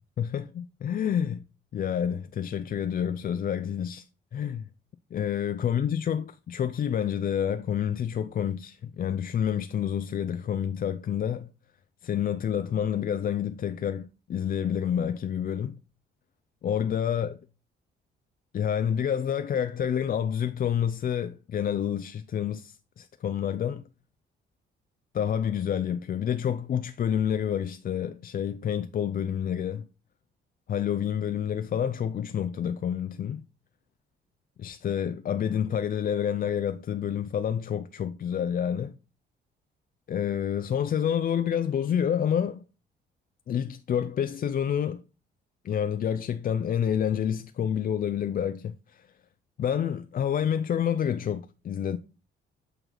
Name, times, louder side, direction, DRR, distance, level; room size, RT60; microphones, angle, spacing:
voice 1, 0.2-1.4 1.7-4.0 4.3-4.7 5.1-11.5 12.0-15.8 16.6-17.3 18.5-23.9 25.1-29.9 30.7-33.5 34.6-39.0 40.1-42.6 43.5-45.0 45.6-49.1 49.6-52.0, left 9 dB, 45° left, 0.5 m, -28 dB
8.0 x 4.6 x 3.9 m
cardioid pair, 90°, 20 cm